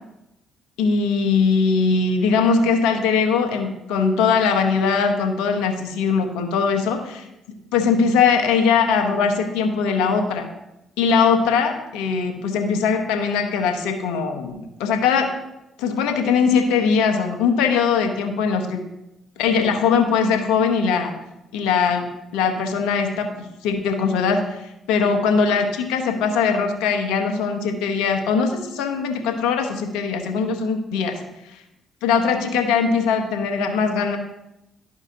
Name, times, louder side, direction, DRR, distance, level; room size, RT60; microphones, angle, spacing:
voice 1, 0.8-7.0 7.7-10.5 11.0-15.3 15.8-18.8 19.4-21.1 21.5-31.2 32.0-34.2, left 5 dB, 80° left, 4 dB, 0.9 m, -21 dB
12.0 x 4.8 x 2.8 m, 0.91 s
hypercardioid pair, 55°, 0 cm